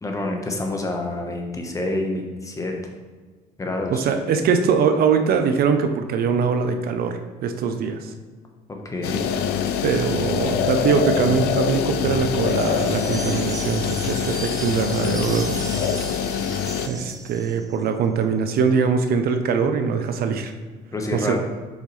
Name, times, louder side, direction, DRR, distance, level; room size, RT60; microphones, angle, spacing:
voice 1, 0.0-2.7 3.6-4.1 8.8-9.2 20.9-21.4, left 2 dB, 20° left, 2 dB, 1.0 m, -27 dB
voice 2, 3.9-8.1 9.8-15.6 16.9-20.5 21.1-21.4, right 6 dB, 65° right, 7 dB, 0.6 m, -22 dB
sound 1, 9.0-16.9, left 8 dB, 75° left, 0.6 m, -24 dB
sound 2, 12.4-17.8, right 3 dB, 20° right, 0.5 m, -36 dB
7.0 x 5.5 x 3.2 m, 1.5 s
cardioid pair, 110°, 17 cm